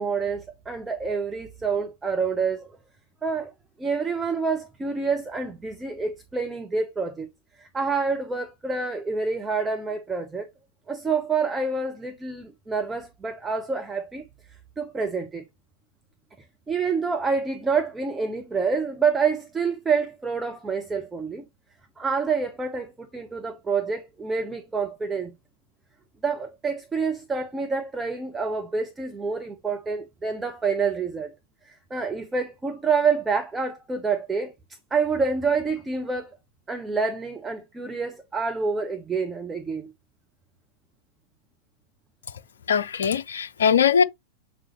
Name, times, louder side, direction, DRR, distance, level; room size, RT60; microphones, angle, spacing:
voice 1, 0.0-2.7 3.2-3.5 3.8-7.3 7.6-10.5 10.9-14.2 14.8-15.4 16.7-21.4 22.0-25.3 26.2-31.3 31.6-34.5 34.9-36.3 36.7-39.9, right 5 dB, 15° right, 0.9 m, -27 dB
voice 2, 42.7-44.0, left 7 dB, 65° left, 0.5 m, -21 dB
7.4 x 4.9 x 3.2 m
figure-of-eight pair, 90°, 0 cm